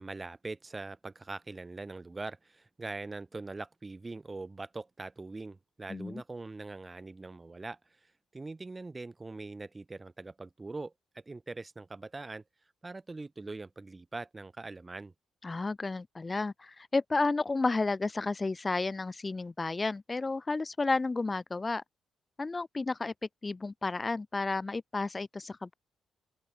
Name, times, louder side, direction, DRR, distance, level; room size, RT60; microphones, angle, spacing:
voice 1, 0.0-12.4 12.8-15.1, right 3 dB, 25° right, 7.1 m, -42 dB
voice 2, 5.9-6.2 15.4-21.8 22.4-23.1 23.4-25.7, left 3 dB, 25° left, 0.8 m, -32 dB
open air
cardioid pair, 80°, 0 cm